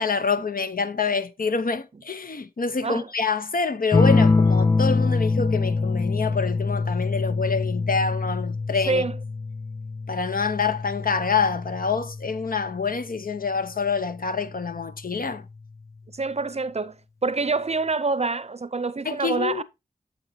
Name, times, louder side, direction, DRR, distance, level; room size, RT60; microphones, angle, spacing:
voice 1, 0.0-9.0 10.1-15.5 19.0-19.6, left 5 dB, 65° left, 0.7 m, -26 dB
sound 1, 3.9-13.0 14.4-15.0, left 3 dB, 20° left, 0.3 m, -24 dB
voice 2, 16.1-17.0 17.2-19.6, right 3 dB, 40° right, 0.5 m, -26 dB
8.8 x 7.1 x 2.7 m
wide cardioid pair, 65°, 16 cm